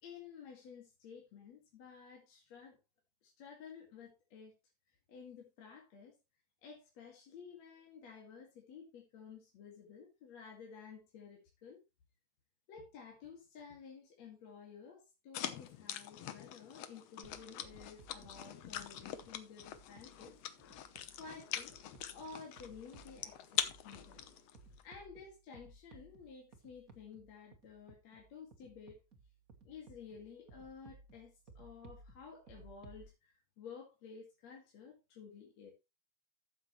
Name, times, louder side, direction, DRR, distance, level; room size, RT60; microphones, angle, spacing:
voice 1, 0.0-2.8 3.2-4.5 5.1-6.2 6.6-11.8 12.7-20.3 20.6-20.7 21.2-21.7 22.1-24.3 24.8-29.0 29.6-35.7, left 6 dB, 55° left, 3.2 m, -53 dB
sound 1, 15.3-24.8, left 10 dB, 70° left, 1.6 m, -43 dB
sound 2, 17.2-33.1, right 3 dB, 45° right, 1.1 m, -60 dB
13.0 x 7.8 x 3.1 m
omnidirectional pair, 3.9 m